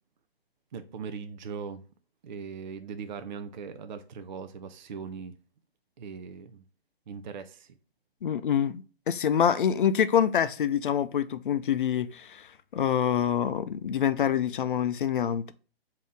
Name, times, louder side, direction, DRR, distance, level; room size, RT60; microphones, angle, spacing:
voice 1, 0.7-1.8 2.2-5.4 6.0-6.6 7.1-7.7, right 6 dB, 50° right, 0.4 m, -39 dB
voice 2, 8.2-12.5 12.7-15.5, left 8 dB, 55° left, 0.4 m, -26 dB
5.3 x 2.8 x 3.5 m
hypercardioid pair, 155°, 31 cm